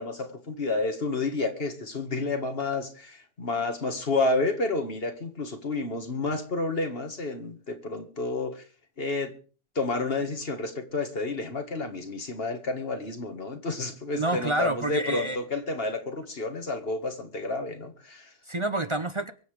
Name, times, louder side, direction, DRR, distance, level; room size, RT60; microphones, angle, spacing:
voice 1, 0.0-8.6 9.0-9.3 9.8-18.3, left 3 dB, 70° left, 2.2 m, -30 dB
voice 2, 14.1-15.4 18.5-19.3, right 2 dB, 35° right, 0.7 m, -28 dB
23.5 x 8.0 x 5.1 m
omnidirectional pair, 1.0 m